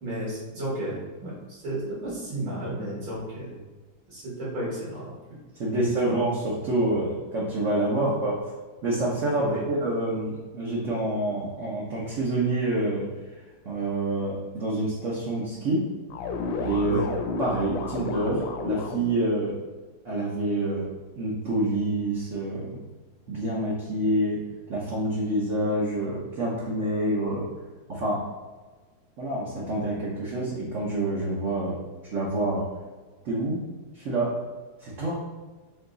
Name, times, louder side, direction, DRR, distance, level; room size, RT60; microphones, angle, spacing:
voice 1, 0.0-3.6 4.1-5.3 5.7-6.2 8.0-8.2 9.4-9.6 16.9-17.1, right 1 dB, 70° right, -7 dB, 2.3 m, -32 dB
voice 2, 5.6-8.4 8.8-13.1 13.6-15.8 16.6-17.0 17.4-19.6 20.0-20.9 21.2-22.8 23.3-24.4 24.7-27.5 27.9-28.2 29.2-31.8 32.1-32.7 33.2-33.6 33.9-34.4 34.8-35.2, right 1 dB, 50° right, -6 dB, 1.0 m, -27 dB
sound 1, 16.1-19.2, left 4 dB, 80° left, 1.3 m, -32 dB
4.6 x 2.9 x 3.9 m, 1.3 s
omnidirectional pair, 2.0 m